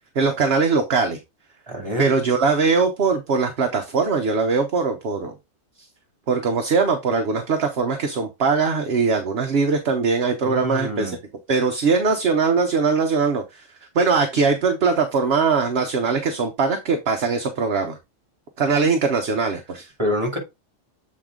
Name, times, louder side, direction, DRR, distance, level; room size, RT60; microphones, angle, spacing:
voice 1, 0.1-1.2 2.0-5.3 6.3-11.2 11.5-13.7 13.9-18.0 18.6-19.9, right 4 dB, 55° right, 1.1 m, -21 dB
voice 2, 1.7-2.1 10.4-11.2 20.0-20.4, equal, 20° right, 2.7 m, -26 dB
7.6 x 4.3 x 3.7 m
omnidirectional pair, 1.3 m